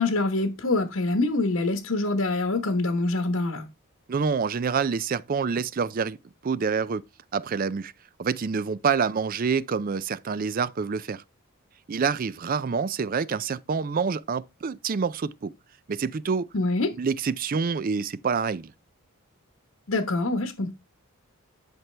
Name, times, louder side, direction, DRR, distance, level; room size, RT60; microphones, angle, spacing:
voice 1, 0.0-3.6 16.5-16.9 19.9-20.7, left 2 dB, 70° left, 1.1 m, -25 dB
voice 2, 4.1-6.2 6.4-7.0 7.3-7.9 8.2-11.2 11.9-15.5 15.9-16.5 17.0-18.7, right 5 dB, 40° right, 0.4 m, -27 dB
10.5 x 6.0 x 3.3 m
head